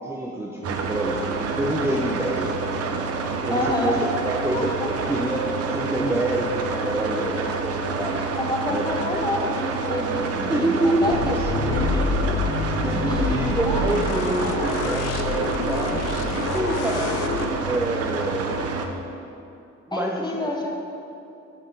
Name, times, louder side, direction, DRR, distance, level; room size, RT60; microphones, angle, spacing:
voice 1, 0.1-3.0 3.5-4.8 5.1-8.3 8.7-9.1 10.5-11.7 12.8-17.2 17.7-18.5 19.9-20.5, right 1 dB, 10° right, 0 dB, 0.5 m, -27 dB
sound 1, 0.6-18.9, right 4 dB, 55° right, 0.6 m, -28 dB
voice 2, 3.5-4.0 4.5-4.9 8.0-12.5 13.1-14.4 19.9-20.8, left 1 dB, 15° left, 0 dB, 1.0 m, -29 dB
sound 2, 11.1-17.5, left 4 dB, 90° left, 0.6 m, -27 dB
6.9 x 4.1 x 5.2 m, 2.8 s
cardioid pair, 90°, 30 cm